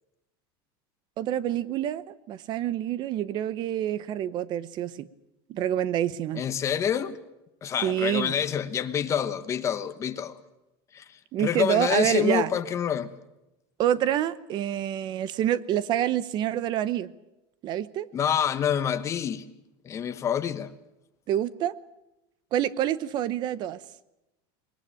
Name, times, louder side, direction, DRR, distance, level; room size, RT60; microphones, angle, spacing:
voice 1, 1.2-5.1 5.5-6.4 7.8-8.3 11.3-12.5 13.8-17.1 17.6-18.1 21.3-21.7 22.5-23.8, right 11 dB, 35° right, 0.8 m, -27 dB
voice 2, 6.3-7.2 7.6-10.3 10.9-11.0 11.4-13.1 18.1-19.5 19.8-20.7, left 8 dB, 25° left, 1.2 m, -27 dB
21.5 x 19.0 x 8.9 m
supercardioid pair, 160°, 13 cm